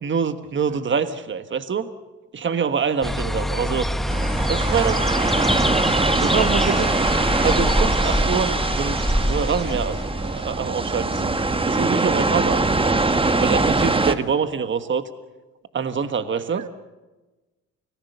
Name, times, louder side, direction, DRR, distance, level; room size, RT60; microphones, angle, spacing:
voice 1, 0.0-1.9 2.3-3.9 4.5-5.0 6.1-6.9 7.4-11.3 11.7-12.6 13.4-15.0 15.7-16.6, right 6 dB, 40° right, 10 dB, 1.4 m, -25 dB
sound 1, 3.0-10.7, equal, ahead, 1.1 m, -24 dB
sound 2, 4.1-14.1, right 3 dB, 20° right, 1.4 m, -22 dB
voice 2, 6.7-7.2 16.5-16.7, right 9 dB, 75° right, 10 dB, 1.7 m, -37 dB
30.0 x 19.0 x 6.8 m, 1.1 s
cardioid pair, 90°, 30 cm